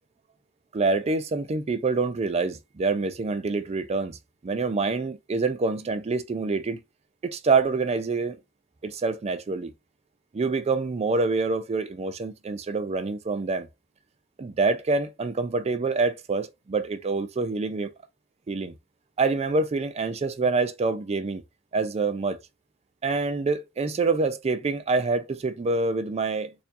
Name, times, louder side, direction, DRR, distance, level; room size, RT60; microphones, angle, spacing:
voice 1, 0.7-4.2 4.4-6.8 7.2-8.4 8.8-9.7 10.3-13.7 14.4-17.9 18.5-18.7 19.2-21.4 21.7-22.4 23.0-26.5, right 3 dB, 30° right, 0.4 m, -26 dB
4.4 x 2.7 x 2.6 m
head